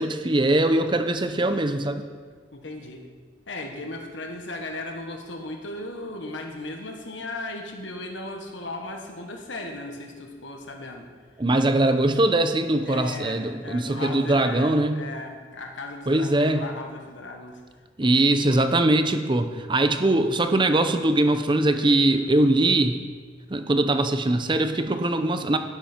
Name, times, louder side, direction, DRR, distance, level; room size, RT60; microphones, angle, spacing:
voice 1, 0.0-2.0 11.4-15.0 16.1-16.7 18.0-23.0 23.5-25.6, right 2 dB, 25° right, 8 dB, 0.7 m, -22 dB
voice 2, 2.5-3.1 3.5-11.1 12.9-17.6 18.0-18.7, left 2 dB, 85° left, 3 dB, 1.6 m, -36 dB
11.5 x 10.5 x 4.5 m, 1.5 s
head